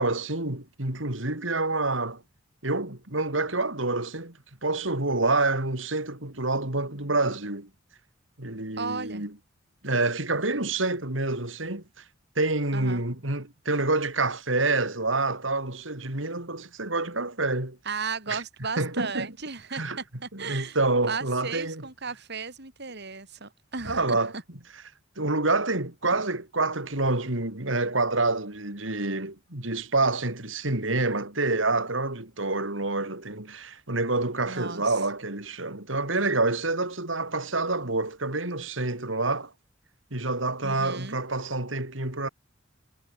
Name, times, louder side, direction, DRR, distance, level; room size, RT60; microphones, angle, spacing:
voice 1, 0.0-2.2 2.6-7.7 8.4-9.3 9.8-12.0 12.4-17.8 18.3-18.4 18.8-19.3 19.7-20.0 20.3-21.8 23.8-24.3 25.2-39.5 40.1-42.3, right 2 dB, 75° right, 4.2 m, -27 dB
voice 2, 8.8-9.3 12.7-13.0 17.8-20.8 21.1-24.4 34.4-35.0 40.6-41.2, right 4 dB, 60° right, 4.7 m, -35 dB
head